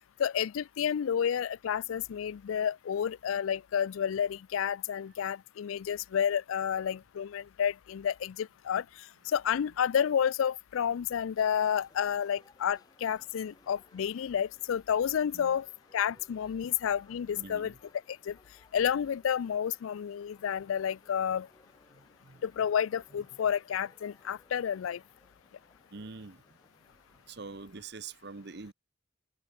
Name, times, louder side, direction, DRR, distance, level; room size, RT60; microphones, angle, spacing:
voice 1, 0.2-8.8 9.3-15.7 15.9-17.7 18.3-18.4 18.7-21.5 22.4-25.0, left 8 dB, 80° left, 0.4 m, -30 dB
sound 1, 11.4-27.3, left 2 dB, 20° left, 2.2 m, -64 dB
voice 2, 17.3-17.8 21.9-22.4 25.9-26.4 27.3-28.7, right 4 dB, 55° right, 1.0 m, -45 dB
head